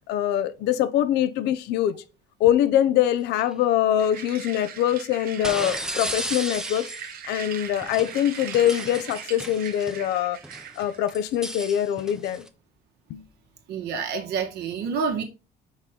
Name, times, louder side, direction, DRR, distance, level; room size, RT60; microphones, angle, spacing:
voice 1, 0.1-2.0 2.4-6.9 7.3-10.4 10.8-12.5 13.1-13.2, left 11 dB, 85° left, 0.7 m, -23 dB
sound 1, 3.3-3.5 5.4-7.2 7.8-10.0 10.4-12.5, right 1 dB, 5° right, 0.6 m, -35 dB
sound 2, 4.0-11.1, right 8 dB, 60° right, 1.0 m, -40 dB
voice 2, 13.7-15.2, right 6 dB, 75° right, 1.6 m, -28 dB
5.8 x 4.3 x 3.8 m
cardioid pair, 110°, 17 cm